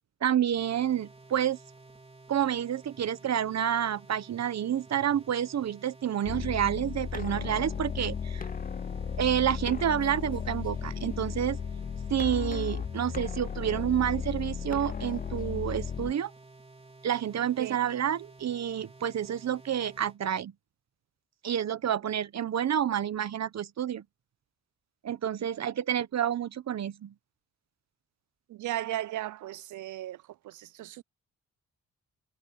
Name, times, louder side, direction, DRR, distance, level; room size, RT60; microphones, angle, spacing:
voice 1, 0.2-1.6 2.3-8.5 9.2-11.6 12.1-16.3 17.0-20.5 21.4-24.0 25.0-27.1, right 10 dB, 60° right, 1.3 m, -29 dB
sound 1, 0.6-20.2, right 3 dB, 20° right, 4.0 m, -53 dB
sound 2, 6.2-16.1, left 7 dB, 30° left, 0.5 m, -35 dB
voice 2, 28.5-31.0, right 14 dB, 75° right, 0.6 m, -36 dB
cardioid pair, 80°, 30 cm